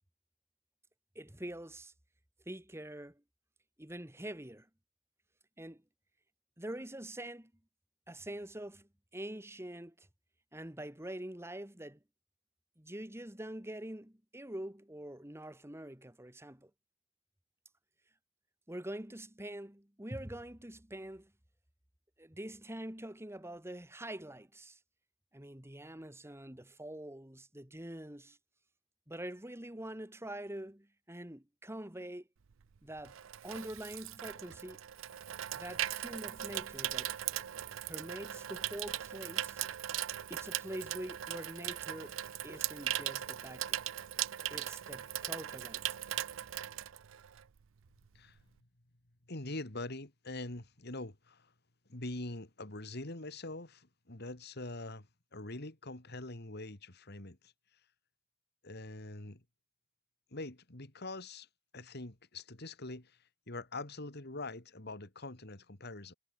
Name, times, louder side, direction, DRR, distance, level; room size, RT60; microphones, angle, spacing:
voice 1, 1.2-1.9 2.5-3.2 3.8-4.7 5.6-5.8 6.6-7.5 8.1-10.1 10.5-12.0 12.8-16.7 18.7-21.3 22.2-24.8 25.3-28.4 29.1-32.3 32.8-33.2 33.4-34.8 35.5-37.1 37.8-39.6 40.3-42.2 42.4-43.8 44.5-45.9, right 1 dB, 15° right, 2.2 m, -45 dB
Water tap faucet / Sink (filling or washing), 32.5-47.6 47.9-48.2, right 12 dB, 85° right, 0.5 m, -39 dB
voice 2, 49.3-51.5 51.9-55.1 55.3-57.5 58.6-59.4 60.3-61.5 61.7-63.1 63.5-66.1, left 2 dB, 55° left, 2.6 m, -44 dB
head